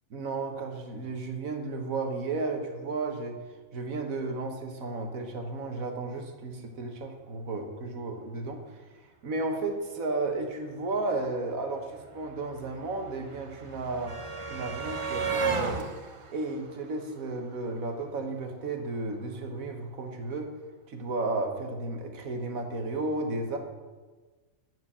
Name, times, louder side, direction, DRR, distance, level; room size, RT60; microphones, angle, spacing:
voice 1, 0.1-3.4 3.7-8.8 9.2-14.2 14.4-15.9 16.3-20.5 20.9-23.6, right 3 dB, 80° right, 4 dB, 1.7 m, -33 dB
sound 1, 11.3-11.4 11.5-17.7 18.9-19.0 19.3-19.4, right 5 dB, 35° right, 0.5 m, -35 dB
11.5 x 4.6 x 8.4 m, 1.3 s
omnidirectional pair, 1.4 m